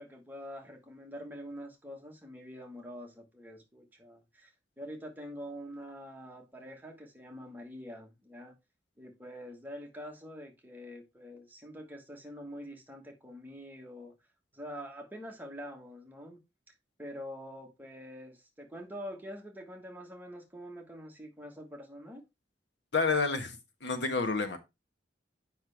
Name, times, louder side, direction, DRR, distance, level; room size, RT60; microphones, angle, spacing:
voice 1, 0.0-4.5 4.8-8.5 9.0-14.1 14.5-16.4 16.7-22.3, equal, 10° right, 1.3 m, -45 dB
voice 2, 22.9-24.6, left 4 dB, 75° left, 1.3 m, -29 dB
7.7 x 5.5 x 3.4 m
head